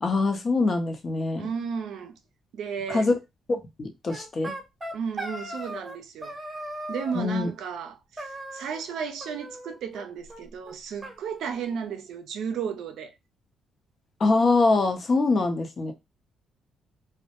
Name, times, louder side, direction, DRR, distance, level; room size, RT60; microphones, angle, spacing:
voice 1, 0.0-1.5 2.9-3.2 3.5-4.5 7.1-7.5 14.2-15.9, left 3 dB, 40° left, 0.7 m, -24 dB
voice 2, 1.4-2.2 2.5-3.1 4.9-6.3 6.9-13.1, right 6 dB, 75° right, 0.5 m, -34 dB
sound 1, 4.1-6.0 6.2-7.3 8.2-8.9 9.2-10.0 10.3-10.4 10.7-10.8 11.0-12.1, right 1 dB, 20° right, 0.8 m, -38 dB
2.1 x 2.0 x 2.8 m
cardioid pair, 90°, 0 cm